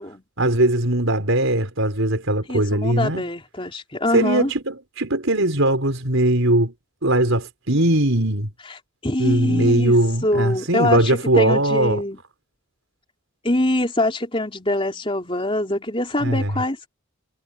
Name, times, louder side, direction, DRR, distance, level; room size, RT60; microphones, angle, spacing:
voice 1, 0.4-3.2 4.1-6.7 7.0-8.5 9.2-12.0 16.2-16.5, right 1 dB, 70° right, 4.9 m, -20 dB
voice 2, 2.5-4.5 9.0-10.0 10.2-12.2 13.4-16.9, left 1 dB, 25° left, 3.7 m, -24 dB
head